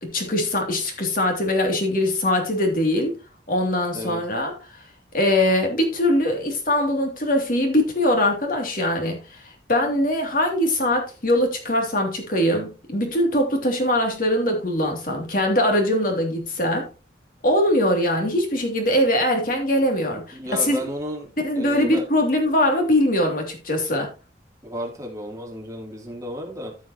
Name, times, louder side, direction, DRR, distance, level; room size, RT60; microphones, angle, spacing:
voice 1, 0.0-3.1 3.5-4.5 5.1-9.2 9.7-16.9 17.4-20.8 21.4-24.1, left 1 dB, 45° left, 2.7 m, -22 dB
voice 2, 3.9-4.2 20.3-22.0 24.6-26.8, equal, 20° right, 2.9 m, -33 dB
15.0 x 5.7 x 2.9 m
head